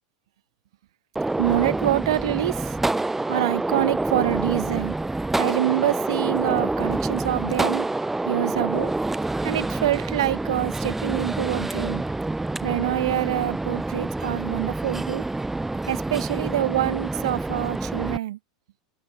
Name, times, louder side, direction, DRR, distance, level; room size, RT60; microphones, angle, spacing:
Gunshot gunfire, 1.1-18.2, right 2 dB, 10° right, 3.8 m, -27 dB
voice 1, 1.4-2.8 3.3-4.9 5.4-7.9 8.2-8.9 9.4-12.0 12.6-15.3 15.9-18.4, right 14 dB, 75° right, 1.3 m, -26 dB
hypercardioid pair, 100°, 3 cm